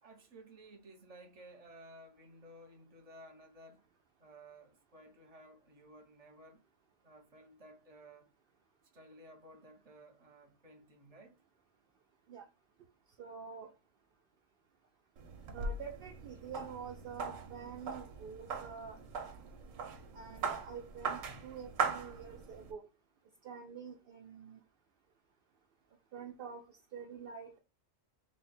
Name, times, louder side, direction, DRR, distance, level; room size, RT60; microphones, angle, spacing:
voice 1, 0.0-3.8 4.2-6.6 7.0-8.3 8.9-11.4, right 1 dB, 35° right, 0.8 m, -56 dB
voice 2, 13.2-13.7 15.5-19.0 20.1-22.9 23.4-24.6 26.1-27.6, right 6 dB, 65° right, 0.6 m, -47 dB
sound 1, 15.2-22.7, right 5 dB, 85° right, 1.1 m, -40 dB
3.2 x 2.3 x 4.1 m
omnidirectional pair, 1.3 m